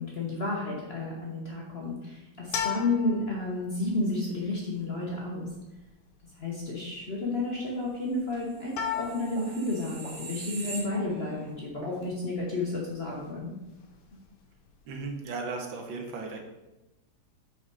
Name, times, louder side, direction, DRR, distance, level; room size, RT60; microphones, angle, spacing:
voice 1, 0.0-5.5 6.4-13.5 14.1-14.2, left 2 dB, 40° left, -3 dB, 0.9 m, -31 dB
sound 1, 2.4-15.2, left 8 dB, 80° left, 1.6 m, -40 dB
sound 2, 8.5-11.4 11.8-12.0, right 3 dB, 55° right, 2.4 m, -42 dB
voice 2, 14.9-16.4, right 3 dB, 75° right, 3 dB, 1.6 m, -36 dB
5.6 x 4.8 x 4.7 m, 0.99 s
omnidirectional pair, 2.2 m